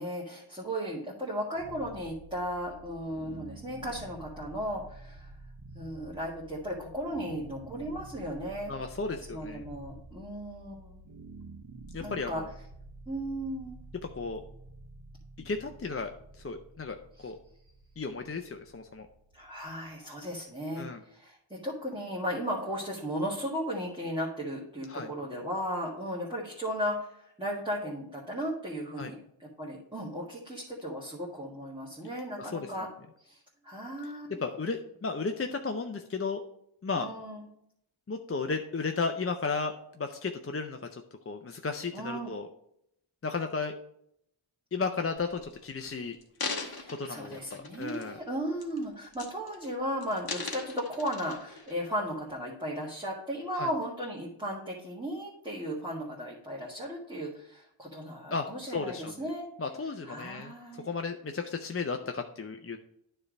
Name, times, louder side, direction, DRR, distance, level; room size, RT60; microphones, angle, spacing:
voice 1, 0.0-5.3 5.7-8.7 9.1-11.0 12.0-12.4 13.1-13.8 17.2-17.3 19.3-32.9 33.2-34.4 36.9-37.4 41.9-42.3 46.6-59.5 60.0-60.9, equal, 10° right, -5 dB, 1.7 m, -36 dB
lf-tones, 1.5-20.6, right 2 dB, 60° right, 1.2 m, -50 dB
voice 2, 8.7-9.6 11.9-12.5 14.2-14.4 15.4-17.0 17.2-17.4 18.0-19.1 20.8-21.0 24.9-25.1 29.0-29.1 32.4-32.7 34.0-34.1 34.4-36.4 36.8-37.1 38.1-42.5 43.2-43.7 44.7-46.2 46.9-48.2 53.5-53.7 58.3-59.3 59.6-62.8, left 4 dB, 30° left, 5 dB, 0.5 m, -34 dB
sound 1, 45.2-45.5 46.1-48.2 48.6-48.8 49.1-49.7 50.0-51.7 52.3-52.4, left 4 dB, 45° left, 1.1 m, -39 dB
9.6 x 3.3 x 5.1 m, 0.75 s
wide cardioid pair, 50°, 50 cm